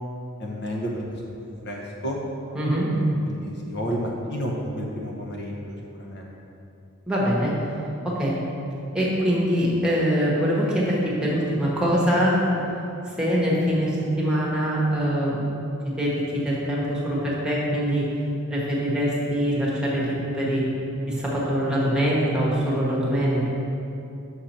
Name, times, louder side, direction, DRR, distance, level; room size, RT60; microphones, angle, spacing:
voice 1, 0.4-1.3 1.6-2.2 3.3-6.3, equal, 50° left, -2 dB, 0.9 m, -31 dB
voice 2, 2.5-2.9 7.1-7.5 8.0-8.3 8.9-12.4 13.2-15.4 16.0-18.1 18.5-20.6 21.1-23.5, equal, 5° right, -6 dB, 1.2 m, -23 dB
6.6 x 6.3 x 4.3 m, 2.8 s
head